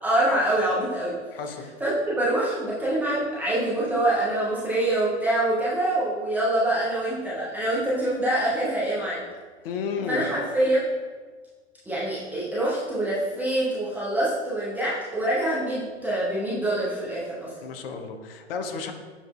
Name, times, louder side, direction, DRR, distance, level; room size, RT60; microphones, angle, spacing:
voice 1, 0.0-1.1 1.8-9.3 10.1-10.9 11.9-17.5, right 1 dB, 5° right, -9 dB, 0.4 m, -25 dB
voice 2, 1.3-1.6 9.6-10.4 17.6-18.9, left 5 dB, 50° left, 5 dB, 0.6 m, -32 dB
7.1 x 2.5 x 2.2 m, 1.4 s
hypercardioid pair, 110°, 36 cm